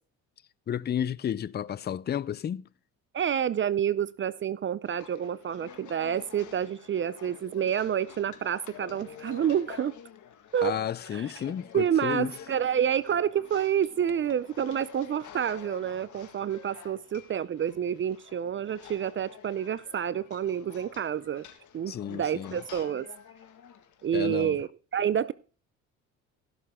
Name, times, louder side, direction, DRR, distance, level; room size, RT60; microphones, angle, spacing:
voice 1, 0.7-2.7 10.6-12.3 21.9-22.6 24.1-24.6, left 9 dB, 30° left, 0.5 m, -32 dB
voice 2, 3.1-9.9 10.5-10.8 11.1-11.3 11.7-21.4 21.7-23.1 24.0-25.3, right 9 dB, 35° right, 0.5 m, -28 dB
sound 1, 4.8-24.5, left 8 dB, 60° left, 1.8 m, -49 dB
16.0 x 6.8 x 3.6 m
supercardioid pair, 80°, 34 cm